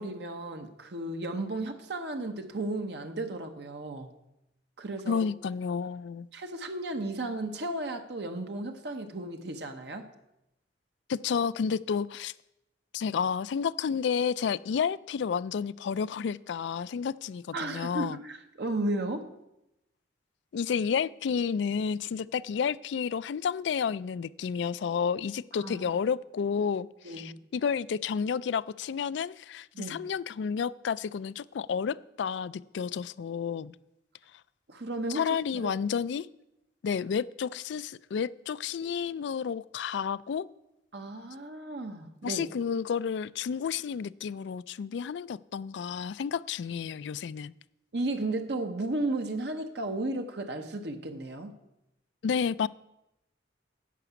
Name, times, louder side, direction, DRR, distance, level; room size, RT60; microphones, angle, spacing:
voice 1, 0.0-4.1 4.8-5.3 6.3-10.1 17.5-19.3 25.5-25.8 27.0-27.4 29.7-30.0 34.7-35.7 40.9-42.5 47.9-51.5, right 2 dB, 65° right, 5 dB, 0.9 m, -34 dB
voice 2, 5.1-6.3 11.1-12.3 12.9-18.2 20.5-33.7 35.1-36.3 36.8-40.5 42.2-47.5 52.2-52.7, left 6 dB, 75° left, 19 dB, 0.3 m, -31 dB
11.0 x 5.9 x 8.2 m, 0.89 s
head